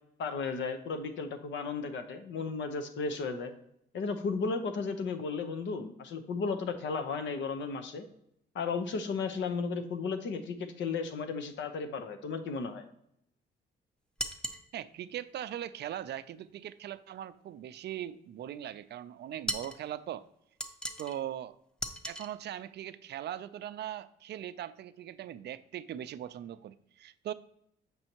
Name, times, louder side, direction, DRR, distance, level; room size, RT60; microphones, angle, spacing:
voice 1, 0.2-3.5 3.9-8.1 8.5-12.8, left 4 dB, 65° left, 8 dB, 0.8 m, -34 dB
sound 1, 14.2-14.7 19.5-19.8 20.6-21.2 21.8-22.3, equal, 5° left, 0.6 m, -36 dB
voice 2, 14.7-20.2 21.0-21.6 22.0-27.3, right 11 dB, 60° right, 13 dB, 0.4 m, -40 dB
7.9 x 5.3 x 2.9 m, 0.76 s
cardioid pair, 90°, 20 cm